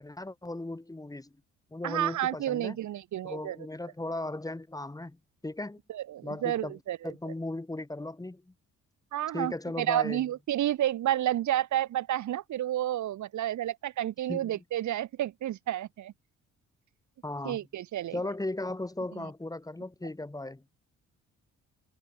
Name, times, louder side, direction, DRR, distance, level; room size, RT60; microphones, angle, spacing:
voice 1, 0.0-1.3 1.7-2.8 3.2-5.8 6.2-6.8 7.0-8.5 9.3-10.3 14.3-14.5 17.2-17.6 18.1-20.6, left 2 dB, 10° left, 2.1 m, -36 dB
voice 2, 1.8-3.6 5.9-7.1 9.1-16.1 17.4-18.2, right 12 dB, 70° right, 1.9 m, -30 dB
cardioid pair, 90°, 30 cm